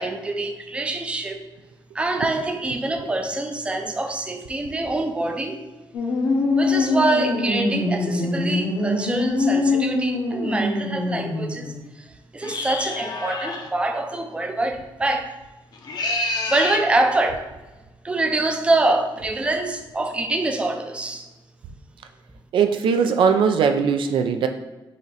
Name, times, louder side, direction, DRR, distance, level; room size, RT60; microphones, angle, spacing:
voice 1, 0.0-1.4 1.9-5.6 6.5-15.3 16.0-17.4 18.0-21.3, right 2 dB, 15° right, 5 dB, 0.4 m, -25 dB
sound 1, 5.9-11.8, left 2 dB, 75° left, 0.9 m, -23 dB
sound 2, 12.4-13.7 15.7-16.9, left 2 dB, 50° left, 0.6 m, -28 dB
voice 2, 22.5-24.5, right 6 dB, 75° right, 7 dB, 0.4 m, -19 dB
4.9 x 2.6 x 4.1 m, 1.1 s
wide cardioid pair, 145°, 9 cm